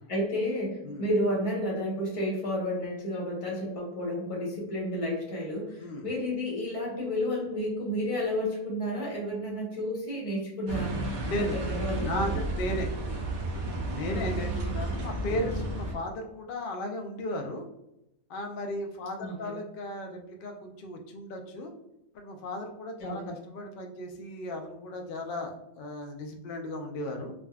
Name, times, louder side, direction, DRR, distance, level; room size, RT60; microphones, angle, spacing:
voice 1, 0.1-10.9 11.4-12.2 14.1-14.5 19.2-19.5 23.0-23.2, equal, 30° left, -3 dB, 0.8 m, -31 dB
sound 1, 10.7-15.9, right 2 dB, 60° right, 1.1 m, -32 dB
voice 2, 11.2-11.6 12.0-12.9 13.8-17.7 18.3-21.7 22.1-27.3, left 1 dB, 75° left, 4 dB, 0.5 m, -35 dB
3.5 x 2.4 x 2.2 m, 0.83 s
omnidirectional pair, 1.5 m